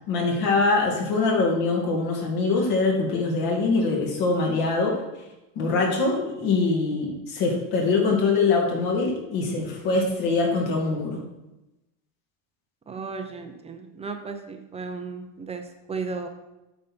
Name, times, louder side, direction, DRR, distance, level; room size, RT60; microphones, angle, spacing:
voice 1, 0.1-5.0 5.6-11.2, left 3 dB, 55° left, 0 dB, 2.6 m, -23 dB
voice 2, 12.9-16.3, right 4 dB, 15° right, 5 dB, 0.5 m, -35 dB
8.7 x 6.5 x 4.4 m, 0.98 s
cardioid pair, 160°, 43 cm